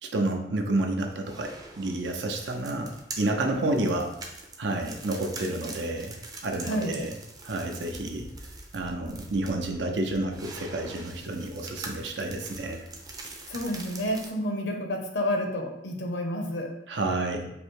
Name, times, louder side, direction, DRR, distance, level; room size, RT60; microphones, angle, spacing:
voice 1, 0.0-4.1 4.6-6.2 6.4-7.1 7.4-8.3 8.7-12.9 16.9-17.5, right 2 dB, 80° right, 3 dB, 0.7 m, -30 dB
sound 1, 1.0-14.3, right 2 dB, 20° right, 0.5 m, -44 dB
voice 2, 6.6-7.0 13.5-16.7, equal, 75° left, 2 dB, 0.8 m, -30 dB
5.0 x 2.1 x 4.5 m, 0.85 s
head